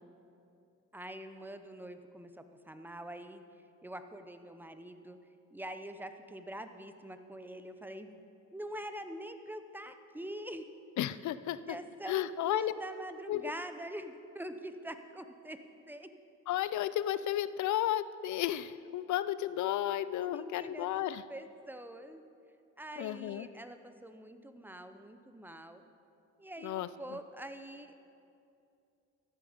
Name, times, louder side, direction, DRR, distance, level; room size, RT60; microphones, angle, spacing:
voice 1, 0.9-3.4 3.8-5.2 5.5-8.2 8.5-10.7 11.6-15.6 15.9-16.1 20.2-22.2 22.8-25.8 26.4-28.0, right 1 dB, 5° right, 9 dB, 0.8 m, -45 dB
voice 2, 11.0-11.8 12.1-12.7 13.3-13.5 16.5-21.2 23.0-23.5 26.6-26.9, left 12 dB, 70° left, 15 dB, 0.5 m, -33 dB
13.5 x 10.5 x 5.1 m, 2.6 s
cardioid pair, 90°, 30 cm